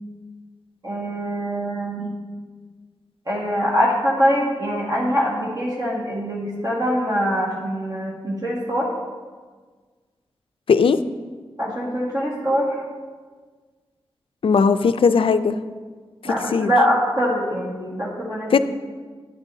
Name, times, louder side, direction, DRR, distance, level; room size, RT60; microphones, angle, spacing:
voice 1, 0.8-2.2 3.3-8.9 11.6-12.8 16.2-18.6, equal, 40° right, -5 dB, 1.8 m, -23 dB
voice 2, 10.7-11.0 14.4-15.6 16.2-16.7 18.5-18.6, left 5 dB, 65° left, 11 dB, 0.4 m, -18 dB
12.0 x 9.5 x 2.7 m, 1.5 s
wide cardioid pair, 125°, 10 cm